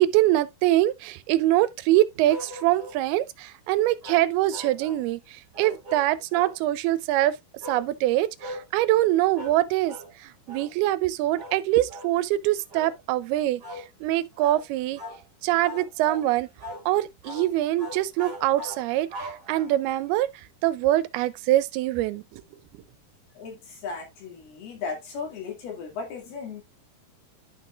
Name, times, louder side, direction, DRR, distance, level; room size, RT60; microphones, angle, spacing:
voice 1, 0.0-7.4 7.7-13.6 14.0-15.0 15.4-16.5 16.9-20.3 20.6-22.4 22.7-22.8, right 15 dB, 85° right, 2.5 m, -24 dB
sound 1, 2.3-3.0 4.0-5.0 5.5-6.6 7.6-7.9 8.4-8.7 9.3-9.6 9.9-10.1 10.5-10.7 11.4-11.6 11.9-12.1 12.7-13.0 13.6-13.9 14.4-14.6 15.0-15.2 15.6-16.3 16.6-16.9 17.2-17.5 17.8-19.9, equal, 30° right, 2.6 m, -40 dB
voice 2, 23.4-26.6, left 5 dB, 80° left, 4.3 m, -36 dB
11.5 x 5.5 x 2.4 m
omnidirectional pair, 4.5 m